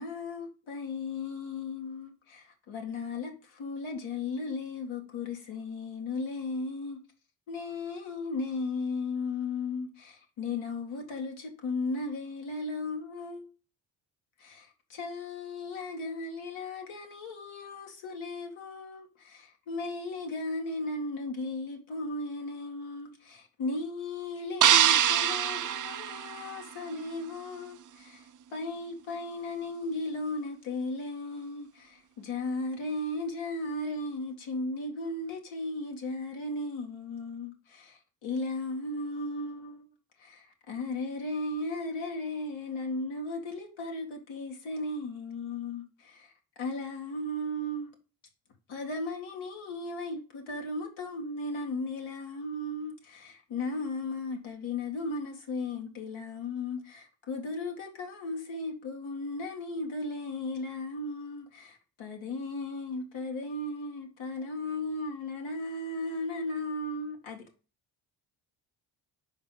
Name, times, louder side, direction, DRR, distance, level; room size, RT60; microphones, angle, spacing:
voice 1, 0.0-7.0 7.5-13.5 14.4-39.9 40.2-46.3 46.6-47.9 48.7-67.4, left 2 dB, 80° left, 2.1 m, -36 dB
sound 1, 24.6-26.9, right 10 dB, 40° right, 0.6 m, -24 dB
5.1 x 4.9 x 5.7 m
supercardioid pair, 50°, 47 cm